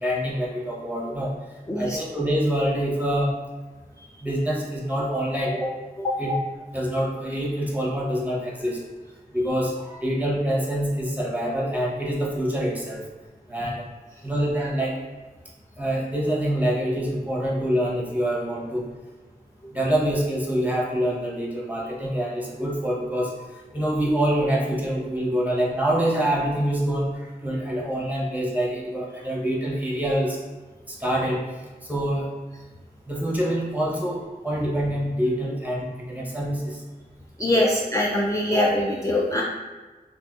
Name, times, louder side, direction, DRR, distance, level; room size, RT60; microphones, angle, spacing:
voice 1, 0.0-1.3 1.8-3.3 4.2-5.7 6.2-6.4 6.7-8.8 9.3-13.0 13.5-13.9 14.2-15.0 15.8-18.8 19.7-23.3 23.7-27.1 27.4-30.4 30.9-31.4 31.9-32.3 33.1-36.8 37.5-37.6, equal, 10° right, -4 dB, 0.8 m, -25 dB
voice 2, 37.4-39.4, left 1 dB, 20° left, -3 dB, 0.4 m, -23 dB
2.6 x 2.5 x 3.5 m, 1.3 s
wide cardioid pair, 45°, 16 cm